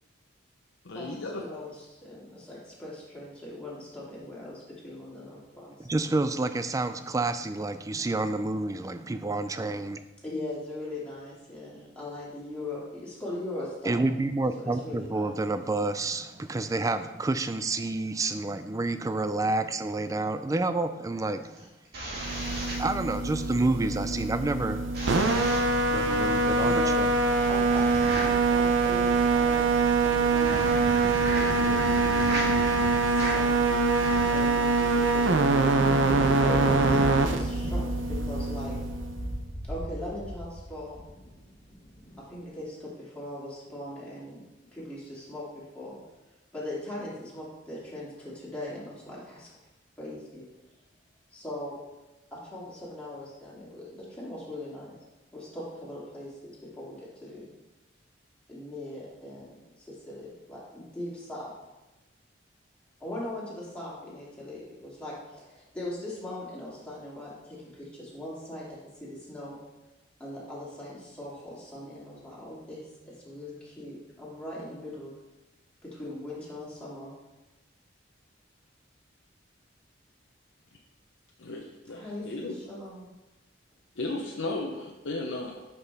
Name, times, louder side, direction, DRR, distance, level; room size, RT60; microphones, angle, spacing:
voice 1, 0.8-1.4 81.4-82.6 84.0-85.6, left 2 dB, 75° left, -1 dB, 0.7 m, -35 dB
voice 2, 1.4-5.9 10.2-14.0 14.6-15.3 26.6-27.1 27.5-30.8 31.3-32.4 33.0-33.5 34.3-35.3 36.0-37.8 38.1-38.8 39.6-41.0 42.3-44.4 44.7-45.4 45.7-46.0 46.5-49.5 50.0-50.5 51.3-51.8 52.3-54.9 55.3-57.4 58.5-61.5 63.0-69.6 70.2-75.1 75.8-77.1 81.9-83.1, left 1 dB, 5° left, -8 dB, 2.5 m, -40 dB
voice 3, 5.8-10.0 13.9-21.5 22.8-24.8 25.9-27.1, right 2 dB, 15° right, 10 dB, 0.3 m, -29 dB
sound 1, 21.4-23.5 24.9-25.9 27.6-34.4, right 1 dB, 55° right, 2.4 m, -36 dB
sound 2, 22.2-39.4, right 3 dB, 80° right, 0.6 m, -24 dB
Thunder, 35.7-42.2, equal, 30° left, 1.5 m, -36 dB
9.7 x 5.6 x 3.5 m, 1.1 s
head